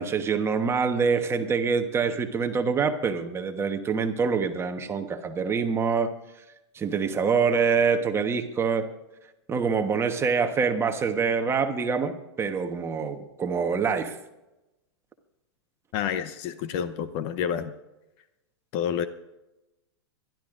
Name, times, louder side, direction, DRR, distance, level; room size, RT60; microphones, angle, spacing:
voice 1, 0.0-6.1 6.7-8.9 9.5-14.2, right 5 dB, 20° right, 6 dB, 1.2 m, -25 dB
voice 2, 15.9-17.7 18.7-19.1, left 8 dB, 40° left, 12 dB, 0.8 m, -29 dB
24.0 x 12.0 x 2.6 m, 0.97 s
hypercardioid pair, 125°, 14 cm